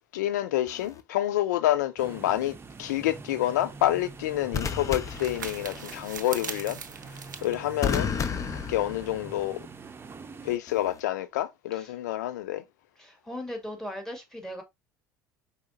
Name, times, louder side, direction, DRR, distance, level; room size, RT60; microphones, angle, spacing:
voice 1, 0.1-2.5 2.8-6.8 7.1-8.1 8.5-9.6 10.4-12.6, left 13 dB, 70° left, 0.4 m, -28 dB
sound 1, 0.7-1.0 4.5-6.0 7.8-9.5 10.7-11.0, left 6 dB, 35° left, 0.7 m, -32 dB
sound 2, 2.0-10.6, right 4 dB, 25° right, 0.7 m, -45 dB
sound 3, 3.6-8.8, right 7 dB, 85° right, 0.5 m, -42 dB
voice 2, 13.0-14.6, equal, 5° left, 2.0 m, -38 dB
4.8 x 4.1 x 2.6 m
figure-of-eight pair, 65°, 10 cm